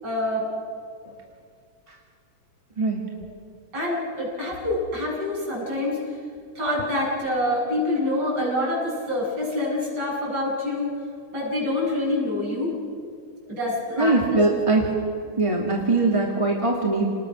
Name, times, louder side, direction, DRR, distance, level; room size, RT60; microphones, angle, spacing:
voice 1, 0.0-0.5 3.1-3.2 3.7-6.2 6.6-10.9 11.3-12.7 13.5-14.4, left 1 dB, 30° right, -5 dB, 8.7 m, -26 dB
voice 2, 14.0-14.8 15.4-17.1, right 2 dB, 10° right, -2 dB, 2.0 m, -21 dB
29.5 x 20.0 x 6.3 m, 2.3 s
omnidirectional pair, 3.6 m